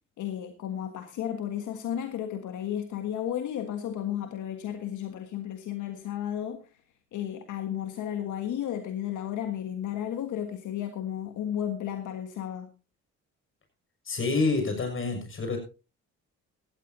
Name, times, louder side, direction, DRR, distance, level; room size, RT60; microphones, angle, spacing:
voice 1, 0.2-6.6 7.1-12.7, left 10 dB, 80° left, 7 dB, 1.6 m, -33 dB
voice 2, 14.0-15.6, left 3 dB, 40° left, 5 dB, 6.5 m, -27 dB
17.0 x 14.5 x 2.8 m, 0.31 s
cardioid pair, 90°, 30 cm